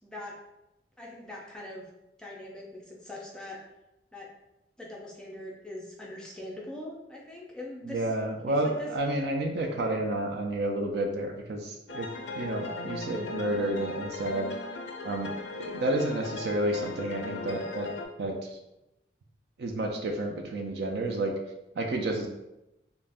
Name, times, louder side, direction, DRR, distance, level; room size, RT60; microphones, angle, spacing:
voice 1, 0.0-0.3 1.0-1.8 2.2-3.6 4.1-4.3 4.8-8.0 8.5-8.9, left 1 dB, 5° left, -4 dB, 0.4 m, -42 dB
voice 2, 7.8-12.1 12.3-14.5 15.0-18.6 19.6-21.3 21.8-22.3, right 1 dB, 60° right, 3 dB, 0.4 m, -30 dB
sound 1, 11.9-18.1, left 3 dB, 70° left, 0.4 m, -38 dB
2.4 x 2.1 x 3.3 m, 0.93 s
head